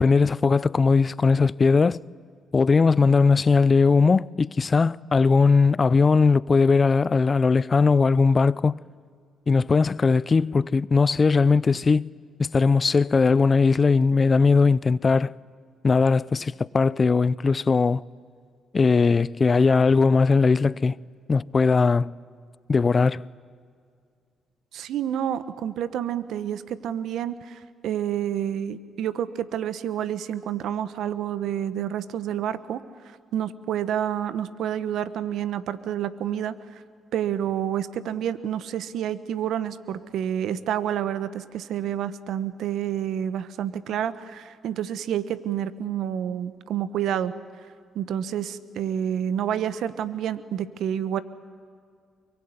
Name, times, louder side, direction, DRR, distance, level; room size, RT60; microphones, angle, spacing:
voice 1, 0.0-2.0 2.5-8.8 9.5-12.1 12.4-15.4 15.8-18.0 18.7-21.0 21.3-22.1 22.7-23.2, left 4 dB, 40° left, 0.6 m, -19 dB
voice 2, 24.7-32.8 33.3-36.8 37.1-47.3 47.9-51.2, right 10 dB, 75° right, 1.1 m, -29 dB
23.5 x 23.0 x 9.7 m
supercardioid pair, 55°, 0 cm